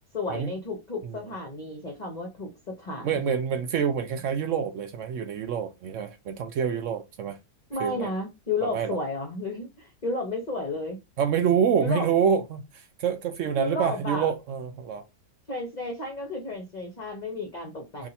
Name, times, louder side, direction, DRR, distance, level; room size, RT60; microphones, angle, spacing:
voice 1, 0.0-3.3 7.7-11.0 11.8-12.1 13.5-14.3 15.5-18.1, left 2 dB, 35° left, 0.7 m, -32 dB
voice 2, 3.0-7.4 7.8-8.1 8.6-9.0 11.2-15.0 18.0-18.1, right 7 dB, 70° right, 0.7 m, -27 dB
2.8 x 2.6 x 4.0 m
omnidirectional pair, 1.7 m